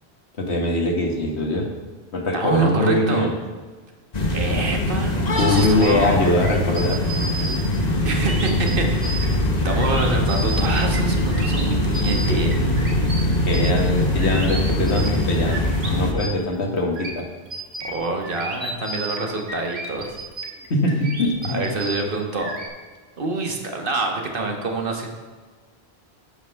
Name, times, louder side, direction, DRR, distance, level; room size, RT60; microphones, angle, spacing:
voice 1, 0.4-1.7 2.1-3.3 5.3-7.0 13.5-17.3 20.7-21.6, left 2 dB, 90° left, 1 dB, 1.8 m, -22 dB
voice 2, 2.3-3.3 4.3-6.3 8.0-12.6 16.6-16.7 17.8-20.1 21.5-22.5 23.2-25.1, right 3 dB, 55° right, 2 dB, 1.6 m, -26 dB
sound 1, 4.1-16.1, left 1 dB, 40° left, 1.2 m, -22 dB
sound 2, 5.5-15.9 16.2-22.7, right 2 dB, 75° right, 1.9 m, -34 dB
12.0 x 6.1 x 5.8 m, 1.4 s
omnidirectional pair, 1.1 m